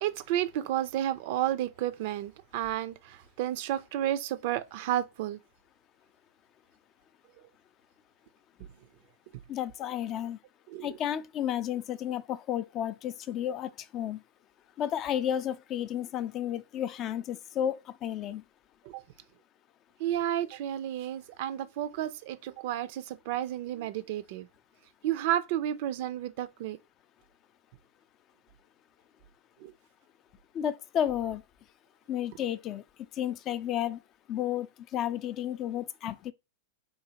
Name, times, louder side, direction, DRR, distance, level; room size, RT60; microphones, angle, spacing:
voice 1, 0.0-5.4 10.7-10.9 18.8-19.0 20.0-24.5 25.0-26.8 29.6-29.7, right 12 dB, 60° right, 0.4 m, -31 dB
voice 2, 9.5-10.4 10.8-14.2 14.8-18.4 30.5-31.4 32.1-32.8 33.1-34.0 34.3-36.3, left 10 dB, 35° left, 0.3 m, -32 dB
3.8 x 2.7 x 2.8 m
hypercardioid pair, 110°, 0 cm